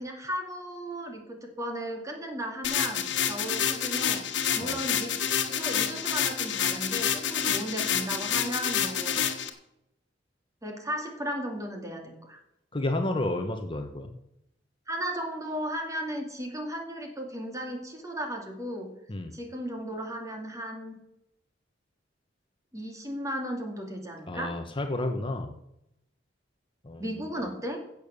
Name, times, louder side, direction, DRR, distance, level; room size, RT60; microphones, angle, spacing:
voice 1, 0.0-4.2 4.5-9.3 10.6-12.4 14.9-18.9 19.3-20.9 22.7-24.5 27.0-27.8, equal, 20° right, 3 dB, 2.5 m, -35 dB
sound 1, 2.6-9.5, left 8 dB, 70° left, 1.5 m, -28 dB
voice 2, 12.7-14.1 19.1-19.3 24.3-25.5 26.8-27.0, left 1 dB, 30° left, 6 dB, 1.0 m, -31 dB
16.0 x 7.0 x 6.9 m, 0.82 s
head